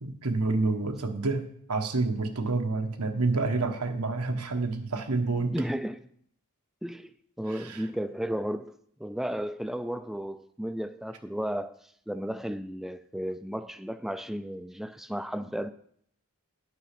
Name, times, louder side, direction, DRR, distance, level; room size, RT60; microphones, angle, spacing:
voice 1, 0.0-5.6 7.5-7.8, right 3 dB, 90° right, 1.3 m, -28 dB
voice 2, 5.5-6.1 6.8-15.7, equal, ahead, 0.3 m, -34 dB
10.0 x 6.7 x 5.8 m
head